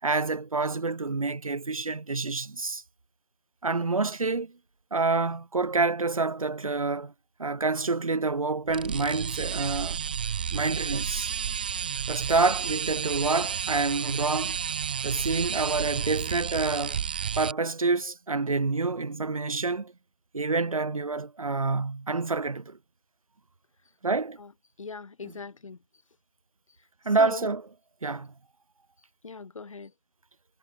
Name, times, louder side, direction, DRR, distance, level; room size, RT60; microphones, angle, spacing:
voice 1, 0.0-2.8 3.6-4.5 4.9-7.1 7.4-10.0 10.5-11.3 12.1-14.6 15.0-17.0 17.4-19.9 20.3-22.8 24.0-24.4 25.2-25.3 27.0-27.7 28.0-28.3, right 3 dB, 75° right, 6.8 m, -27 dB
sound 1, 8.7-17.5, right 7 dB, 15° right, 0.4 m, -31 dB
voice 2, 24.8-25.8 27.2-27.5 29.2-29.9, left 4 dB, 65° left, 2.8 m, -40 dB
figure-of-eight pair, 160°, 18 cm